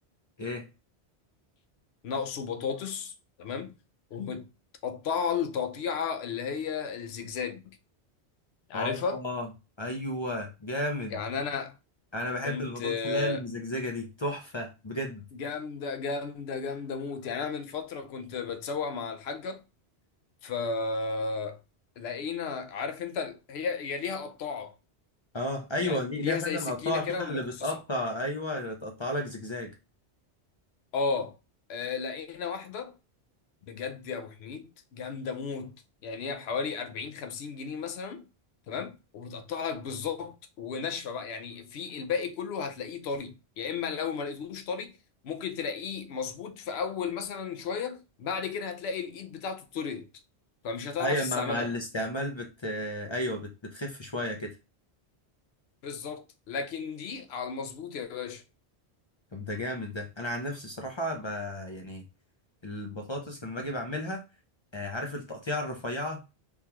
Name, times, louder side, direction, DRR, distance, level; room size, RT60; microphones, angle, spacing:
voice 1, 2.0-3.1 3.4-3.7 4.1-4.5 4.8-7.8 8.7-9.2 11.1-11.7 12.4-13.4 15.4-19.6 20.4-21.6 22.0-24.7 25.8-27.7 30.9-31.4 31.7-33.0 33.7-35.7 36.0-38.3 38.7-44.9 45.2-50.1 50.6-51.7 55.8-58.4, left 5 dB, 75° left, 0.8 m, -34 dB
voice 2, 8.7-9.5 9.8-11.2 12.1-15.2 25.3-29.7 51.0-54.5 59.3-62.0 62.6-64.2 64.7-66.2, left 1 dB, 40° left, 0.4 m, -33 dB
3.5 x 2.3 x 2.8 m
omnidirectional pair, 1.1 m